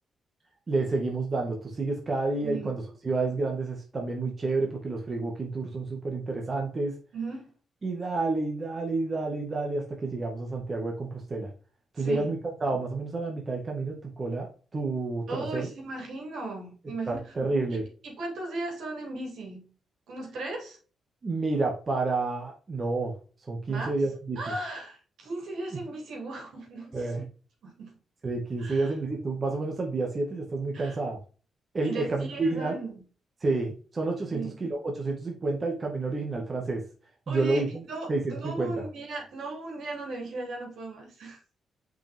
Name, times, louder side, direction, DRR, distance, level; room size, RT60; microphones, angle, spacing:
voice 1, 0.7-7.0 7.8-11.5 11.9-14.5 14.7-15.7 17.1-17.8 21.2-23.1 23.5-24.4 26.9-27.2 28.2-31.2 31.7-32.8 33.4-36.8 37.3-37.8 38.1-38.8, right 3 dB, 35° right, 0 dB, 1.9 m, -29 dB
voice 2, 2.4-2.7 7.1-7.5 12.0-12.3 15.3-17.2 17.7-19.7 20.1-20.8 23.7-24.0 24.3-27.1 27.6-27.9 28.6-28.9 30.7-31.0 31.8-32.9 34.3-34.5 37.3-41.4, right 2 dB, 75° right, 0 dB, 3.3 m, -37 dB
6.8 x 5.4 x 3.6 m, 0.38 s
cardioid pair, 95°, 0 cm